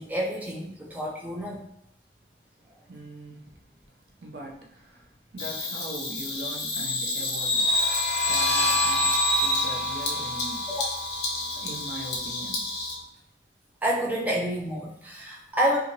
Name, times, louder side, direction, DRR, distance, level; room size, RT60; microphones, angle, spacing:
voice 1, 0.0-1.6 10.7-10.9 13.8-15.8, equal, 10° right, -4 dB, 0.3 m, -28 dB
voice 2, 2.9-3.6 3.9-7.7 8.1-10.7 11.3-12.7, right 1 dB, 65° right, 0 dB, 0.5 m, -41 dB
Bird vocalization bird call bird song, 5.4-12.9, left 2 dB, 65° left, 0.6 m, -28 dB
sound 1, 7.5-12.9, left 1 dB, 10° left, 0.8 m, -30 dB
2.8 x 2.4 x 2.7 m, 0.77 s
head